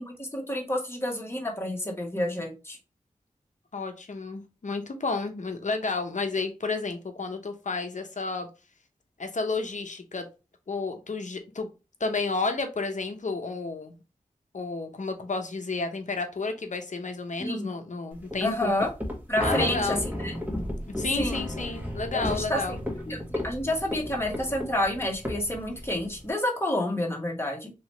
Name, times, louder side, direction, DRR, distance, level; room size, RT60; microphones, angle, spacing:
voice 1, 0.0-2.8 17.4-17.7 18.4-18.9 19.3-20.3 21.1-21.4 22.1-22.8 23.1-27.7, left 1 dB, 15° left, 0 dB, 1.2 m, -29 dB
voice 2, 3.7-8.5 9.2-10.3 10.7-11.7 12.0-13.9 14.5-18.7 19.4-20.0 20.9-22.8, left 3 dB, 60° left, 6 dB, 0.7 m, -31 dB
sound 1, 18.2-26.3, left 1 dB, 10° right, 1.3 m, -33 dB
3.1 x 3.0 x 3.0 m, 0.30 s
cardioid pair, 40°, 14 cm